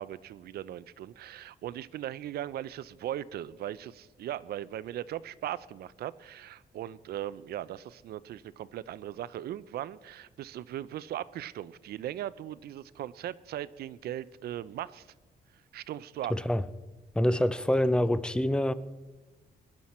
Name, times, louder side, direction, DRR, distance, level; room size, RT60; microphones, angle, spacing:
voice 1, 0.0-15.1 15.7-16.4, right 12 dB, 80° right, 0.5 m, -38 dB
voice 2, 16.3-16.6 17.1-18.7, left 1 dB, 5° left, 0.4 m, -26 dB
21.5 x 11.5 x 4.3 m
wide cardioid pair, 170°, 16 cm